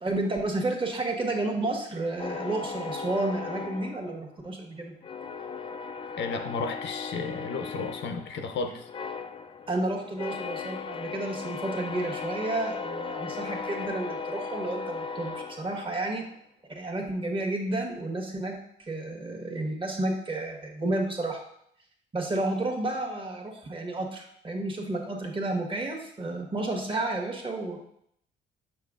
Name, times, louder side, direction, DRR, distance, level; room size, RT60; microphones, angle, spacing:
voice 1, 0.0-4.9 9.7-16.2 16.7-21.4 22.1-27.8, right 2 dB, 25° right, 1 dB, 1.3 m, -31 dB
sound 1, 2.2-4.6 5.0-16.2, left 5 dB, 25° left, 0.4 m, -37 dB
voice 2, 6.2-8.9, left 4 dB, 70° left, 6 dB, 0.6 m, -33 dB
6.7 x 5.9 x 2.4 m, 0.70 s
cardioid pair, 90°, 20 cm